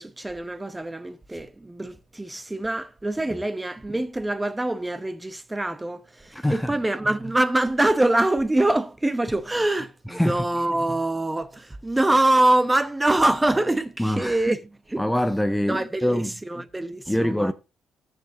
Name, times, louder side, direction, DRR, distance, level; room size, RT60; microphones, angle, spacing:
voice 1, 0.0-14.6 14.9-15.0 15.7-17.5, right 1 dB, 15° right, 0.9 m, -24 dB
voice 2, 6.3-6.8 10.1-10.5 14.0-14.4 15.0-16.3 17.1-17.5, left 1 dB, 5° left, 0.6 m, -24 dB
13.0 x 8.0 x 2.6 m
cardioid pair, 90°, 0 cm